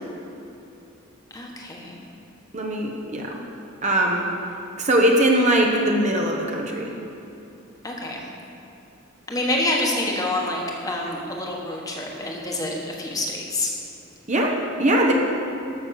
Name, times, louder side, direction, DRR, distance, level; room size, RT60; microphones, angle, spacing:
voice 1, 1.3-2.0 7.8-8.2 9.3-13.7, left 1 dB, 15° left, -1 dB, 1.3 m, -27 dB
voice 2, 2.5-3.4 3.8-4.2 4.8-6.9 14.3-15.1, right 1 dB, 35° right, 0 dB, 1.0 m, -21 dB
13.0 x 6.4 x 6.5 m, 2.9 s
head